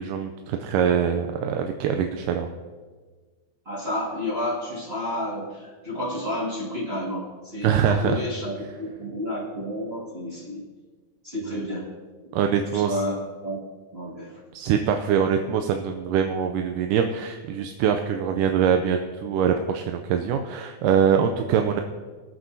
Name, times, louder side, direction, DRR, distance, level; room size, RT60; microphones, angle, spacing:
voice 1, 0.0-2.5 7.6-8.2 11.5-11.6 12.3-13.0 14.5-21.8, right 8 dB, 85° right, 5 dB, 2.2 m, -23 dB
voice 2, 3.7-8.5 8.8-10.6 11.2-11.9 12.7-13.2 13.4-13.6 13.9-14.4, left 1 dB, 20° right, -6 dB, 1.8 m, -30 dB
24.0 x 8.2 x 2.7 m, 1.4 s
omnidirectional pair, 3.7 m